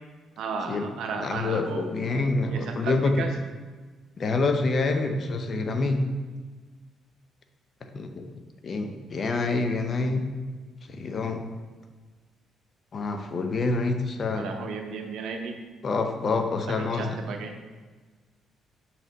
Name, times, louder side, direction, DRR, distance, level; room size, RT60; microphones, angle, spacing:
voice 1, 0.4-1.9 2.5-3.3 14.3-15.6 16.7-17.5, right 4 dB, 80° right, 4 dB, 0.7 m, -34 dB
voice 2, 1.2-3.1 4.2-6.0 7.9-8.3 8.6-10.2 10.9-11.4 12.9-14.5 15.8-17.2, left 3 dB, 45° left, 6 dB, 0.6 m, -27 dB
5.9 x 4.2 x 4.0 m, 1.4 s
cardioid pair, 90°, 0 cm